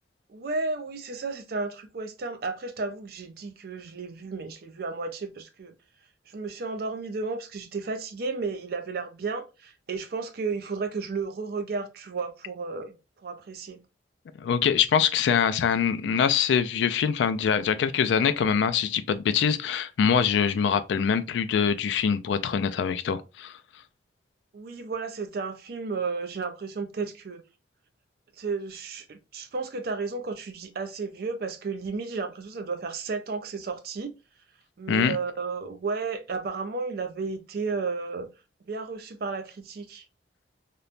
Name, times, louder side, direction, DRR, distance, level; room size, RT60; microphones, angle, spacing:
voice 1, 0.3-5.7 6.3-13.0 13.2-13.8 24.5-27.4 28.4-34.1 34.8-38.3 38.7-40.0, right 4 dB, 55° right, 0.4 m, -33 dB
voice 2, 14.4-23.6 34.9-35.2, left 7 dB, 75° left, 0.3 m, -24 dB
3.0 x 2.1 x 2.4 m
head